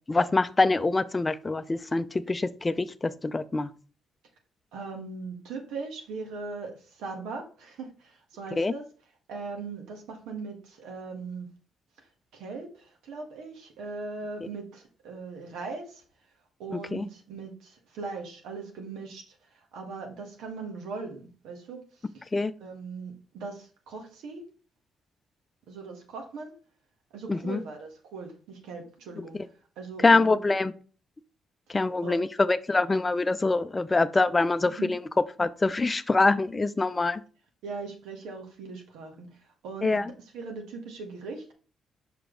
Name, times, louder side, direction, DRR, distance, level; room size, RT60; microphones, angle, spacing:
voice 1, 0.1-3.7 8.6-8.7 16.7-17.1 22.3-22.5 27.3-27.6 29.3-29.5 30.0-30.7 31.7-35.1 35.4-37.2 39.8-40.1, left 3 dB, 20° left, 12 dB, 0.5 m, -25 dB
voice 2, 4.7-8.8 9.3-11.5 12.3-16.0 16.6-21.8 22.1-22.2 22.6-24.4 25.7-26.5 27.1-29.4 29.8-30.4 31.7-31.8 32.0-32.2 34.8-34.9 37.6-40.1 40.3-41.5, right 4 dB, 90° right, 2 dB, 1.6 m, -39 dB
5.9 x 5.0 x 3.8 m, 0.38 s
cardioid pair, 90°, 0 cm